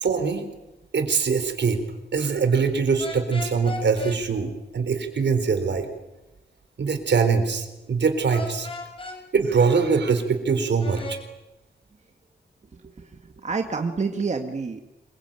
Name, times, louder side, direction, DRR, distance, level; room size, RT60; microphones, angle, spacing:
voice 1, 0.0-0.5 0.9-1.8 2.1-5.9 6.8-8.7 9.3-11.2, right 5 dB, 75° right, 8 dB, 4.1 m, -23 dB
sound 1, 3.0-4.2 8.3-9.2 10.8-11.2, left 3 dB, 30° left, 7.3 m, -35 dB
voice 2, 12.7-14.8, right 4 dB, 40° right, 5 dB, 1.8 m, -29 dB
26.5 x 23.0 x 9.1 m, 1.0 s
wide cardioid pair, 170°, 18 cm